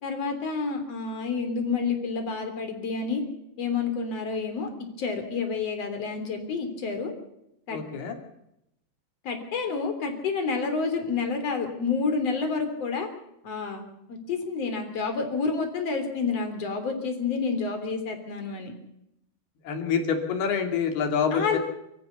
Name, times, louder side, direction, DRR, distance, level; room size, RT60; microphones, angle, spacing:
voice 1, 0.0-3.2 3.6-4.7 5.0-7.1 7.7-7.8 9.2-13.1 13.4-18.7 21.3-21.6, left 4 dB, 40° left, 6 dB, 4.0 m, -29 dB
voice 2, 7.7-8.2 19.6-21.6, left 6 dB, 70° left, 4 dB, 4.6 m, -26 dB
25.0 x 14.5 x 7.0 m, 0.82 s
omnidirectional pair, 4.8 m